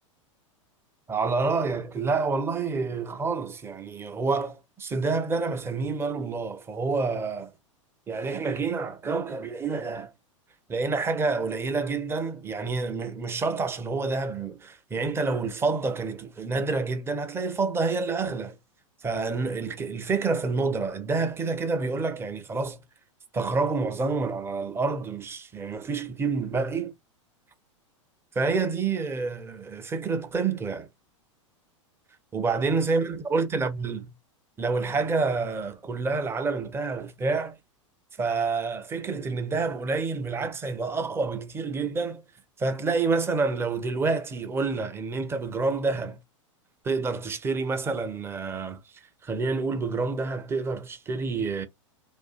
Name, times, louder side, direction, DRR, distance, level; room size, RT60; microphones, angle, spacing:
voice 1, 1.1-7.5 8.1-10.1 10.7-18.6 19.0-22.8 23.3-26.9 28.4-30.9 32.3-34.0 34.6-37.6 38.2-42.2 42.6-46.2 46.8-48.8 49.2-51.7, right 4 dB, 15° right, 0.5 m, -28 dB
2.6 x 2.3 x 2.4 m
hypercardioid pair, 100°, 17 cm